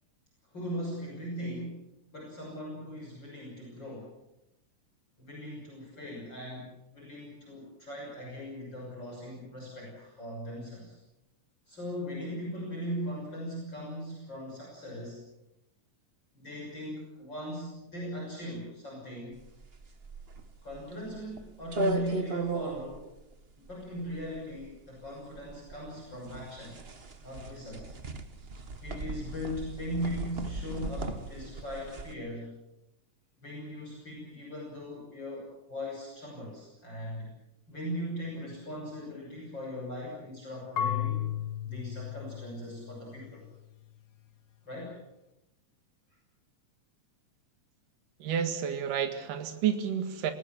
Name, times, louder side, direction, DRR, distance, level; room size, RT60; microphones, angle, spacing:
voice 1, 0.5-1.8 2.1-4.1 5.2-11.0 11.7-15.2 16.4-19.4 20.6-23.1 23.6-26.7 27.2-27.9 28.8-32.5 33.4-37.3 37.7-41.3 41.6-43.5 44.6-45.0, equal, 35° left, -2 dB, 6.9 m, -39 dB
sound 1, 19.4-32.1, right 2 dB, 55° right, 0.6 m, -37 dB
Marimba xylophone / Wood, 40.8-43.6, left 10 dB, 80° left, 1.0 m, -34 dB
voice 2, 48.2-50.3, right 8 dB, 80° right, 8 dB, 3.4 m, -30 dB
27.5 x 18.5 x 7.6 m, 0.91 s
omnidirectional pair, 3.7 m